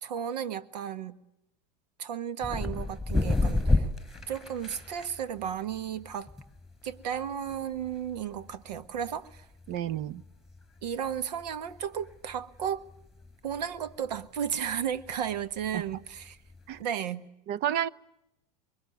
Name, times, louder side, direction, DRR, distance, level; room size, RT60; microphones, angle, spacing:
voice 1, 0.0-1.2 2.0-3.9 4.3-6.3 6.8-9.4 10.8-12.8 13.4-16.4 16.8-17.3, right 9 dB, 75° right, 1.6 m, -34 dB
sound 1, 2.4-16.8, left 2 dB, ahead, 5.2 m, -34 dB
voice 2, 9.7-10.2 15.7-15.8 16.7-16.8 17.5-17.9, right 11 dB, 50° right, 1.0 m, -30 dB
25.0 x 23.0 x 9.5 m
hypercardioid pair, 95°, 21 cm